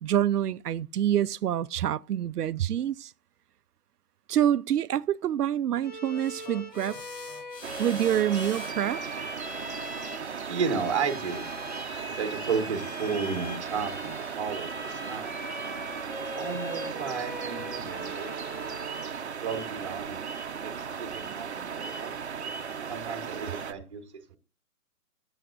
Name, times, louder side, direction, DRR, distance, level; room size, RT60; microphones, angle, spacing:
voice 1, 0.0-3.1 4.3-7.0 7.8-9.0, right 10 dB, 75° right, 0.6 m, -26 dB
Bowed string instrument, 5.8-19.2, left 1 dB, 30° left, 0.7 m, -41 dB
sound 1, 6.1-11.3, left 3 dB, 80° left, 2.6 m, -48 dB
sound 2, 7.6-23.7, right 6 dB, 45° right, 0.8 m, -37 dB
voice 2, 10.5-11.4 12.0-15.3 16.2-18.6 19.4-20.2 20.6-20.7 21.0-22.2 22.9-24.0 24.3-24.4, right 5 dB, 20° right, 1.1 m, -33 dB
19.5 x 7.2 x 2.5 m
hypercardioid pair, 175°, 48 cm